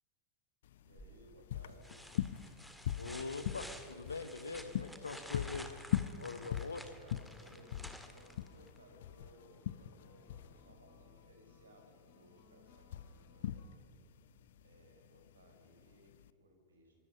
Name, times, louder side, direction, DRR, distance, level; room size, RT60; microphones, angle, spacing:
sound 1, 0.6-16.3, left 11 dB, 60° left, 0.7 m, -42 dB
voice 1, 0.8-2.0 6.7-13.7 14.6-16.9, right 1 dB, 70° right, 3 dB, 5.4 m, -62 dB
sound 2, 1.0-1.3 1.8-8.8 10.5-10.6, equal, ahead, 2.0 m, -52 dB
voice 2, 2.9-5.7 6.2-6.8, left 4 dB, 75° left, 12 dB, 1.2 m, -43 dB
sound 3, 7.1-13.8, left 4 dB, 40° left, 4.6 m, -67 dB
25.5 x 22.0 x 5.7 m, 2.6 s
figure-of-eight pair, 90°, 0 cm